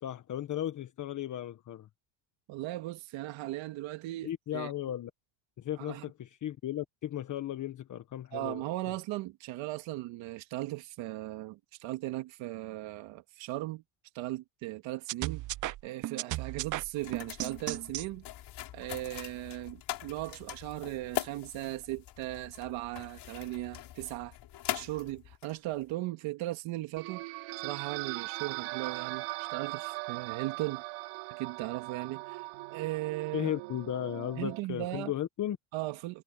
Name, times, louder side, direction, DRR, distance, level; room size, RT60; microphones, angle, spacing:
voice 1, 0.0-1.9 4.2-5.1 5.6-8.6 33.3-35.6, left 12 dB, 35° left, 1.4 m, -35 dB
voice 2, 2.5-4.7 5.8-6.0 8.3-13.8 14.1-15.4 15.8-18.2 18.7-24.3 24.7-27.2 27.6-30.8 31.3-33.5 34.4-35.1 35.7-36.2, right 17 dB, 65° right, 2.1 m, -37 dB
sound 1, 15.1-18.1, right 16 dB, 40° right, 0.6 m, -35 dB
sound 2, 17.0-25.9, left 13 dB, 50° left, 5.0 m, -42 dB
sound 3, 27.0-34.6, right 24 dB, 85° right, 6.1 m, -40 dB
cardioid pair, 135°, 50 cm